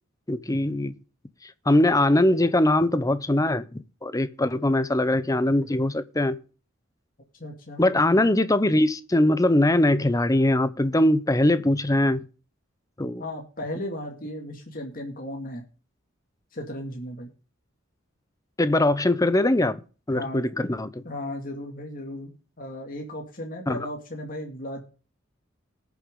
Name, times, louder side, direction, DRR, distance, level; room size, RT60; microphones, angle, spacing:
voice 1, 0.3-0.9 1.4-6.4 7.8-12.2 13.0-13.2 18.6-19.8 20.1-21.0 23.7-23.8, left 1 dB, 15° left, 0.7 m, -22 dB
voice 2, 7.4-7.8 13.2-15.6 16.5-17.3 20.1-20.5 21.0-22.3 22.6-24.8, left 1 dB, 45° left, 2.2 m, -35 dB
19.0 x 7.1 x 3.7 m
head